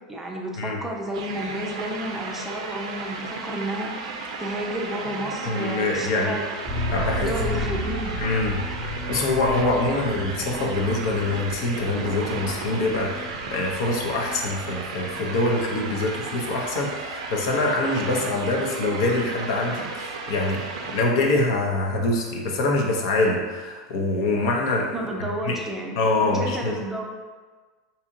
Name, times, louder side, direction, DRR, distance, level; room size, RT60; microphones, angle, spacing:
voice 1, 0.1-3.9 4.4-6.5 7.0-8.2 24.9-27.1, equal, 10° right, -1 dB, 0.5 m, -31 dB
sound 1, 1.1-21.0, right 4 dB, 80° right, 0.5 m, -34 dB
voice 2, 5.5-6.4 6.9-7.3 8.1-8.6 9.1-24.9 25.2-25.6 26.0-26.8, left 2 dB, 65° left, 0 dB, 0.6 m, -25 dB
sound 2, 6.6-16.3 16.5-16.6 16.9-17.0, left 1 dB, 10° left, 0.8 m, -34 dB
4.0 x 2.7 x 2.6 m, 1.4 s
supercardioid pair, 125°, 3 cm